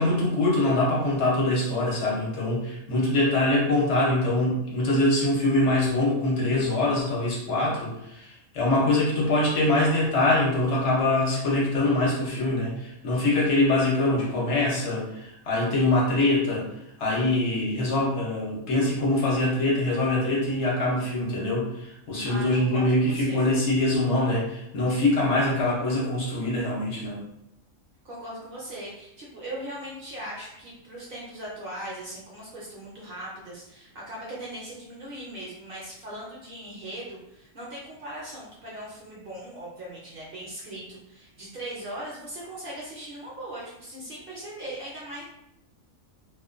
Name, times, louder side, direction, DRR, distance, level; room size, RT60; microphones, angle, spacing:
voice 1, 0.0-16.7 17.0-27.2, left 2 dB, 65° left, -4 dB, 0.9 m, -24 dB
voice 2, 22.2-23.5 28.0-45.2, right 1 dB, 55° right, -5 dB, 0.7 m, -39 dB
2.4 x 2.2 x 2.4 m, 0.82 s
omnidirectional pair, 1.4 m